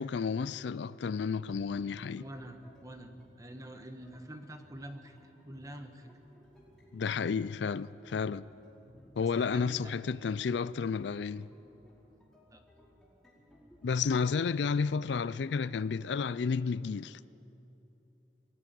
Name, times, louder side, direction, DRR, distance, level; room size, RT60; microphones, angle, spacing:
voice 1, 0.0-2.2 6.9-8.4 9.2-11.5 13.8-17.2, left 5 dB, 85° left, 0.4 m, -31 dB
sound 1, 1.5-16.2, equal, ahead, 4.8 m, -60 dB
voice 2, 2.2-6.1 9.2-9.9 12.5-12.6, right 1 dB, 20° right, 1.2 m, -46 dB
21.0 x 13.5 x 9.4 m
head